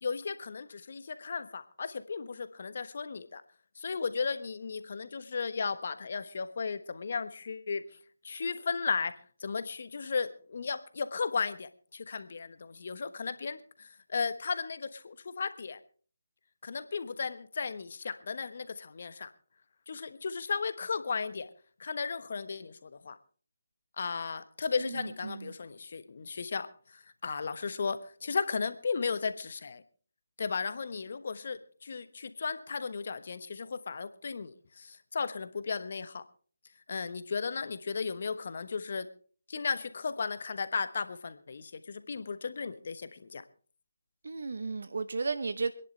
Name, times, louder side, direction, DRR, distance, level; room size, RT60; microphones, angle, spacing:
voice 1, 0.0-3.4 3.8-7.8 8.2-15.8 16.6-19.3 19.9-21.5 21.8-23.2 24.0-29.8 30.4-36.2 36.9-39.1 39.5-43.4, left 5 dB, 50° left, 12 dB, 1.2 m, -35 dB
voice 2, 24.8-25.5 44.2-45.7, right 4 dB, 60° right, 12 dB, 0.9 m, -34 dB
27.0 x 10.5 x 3.3 m, 0.43 s
figure-of-eight pair, 155°, 0 cm